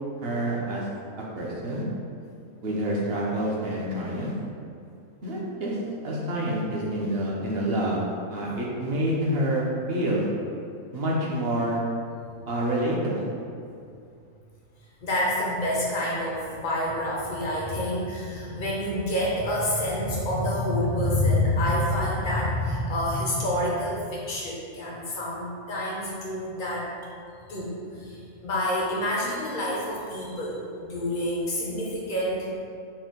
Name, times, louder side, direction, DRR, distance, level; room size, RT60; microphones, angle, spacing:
voice 1, 0.2-0.9 1.3-1.8 2.6-4.3 5.2-5.8 6.0-8.0 8.3-9.6 9.9-10.3 10.9-11.8 12.5-13.3, right 1 dB, 60° right, -4 dB, 0.7 m, -27 dB
voice 2, 15.0-26.9 27.5-32.6, left 1 dB, 65° left, -4 dB, 0.5 m, -27 dB
4.3 x 2.1 x 3.6 m, 2.4 s
omnidirectional pair, 1.5 m